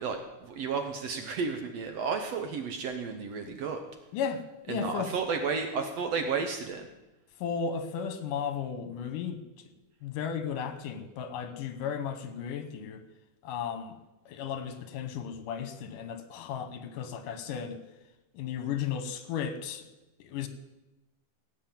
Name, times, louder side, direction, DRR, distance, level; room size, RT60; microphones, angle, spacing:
voice 1, 0.0-3.8 4.7-6.9, right 5 dB, 65° right, 5 dB, 1.8 m, -32 dB
voice 2, 4.7-5.1 7.4-9.4 10.0-13.0 13.4-13.9 14.3-17.8 18.3-19.8 20.2-20.5, left 7 dB, 80° left, 9 dB, 2.7 m, -34 dB
17.5 x 5.9 x 8.9 m, 1.0 s
omnidirectional pair, 3.8 m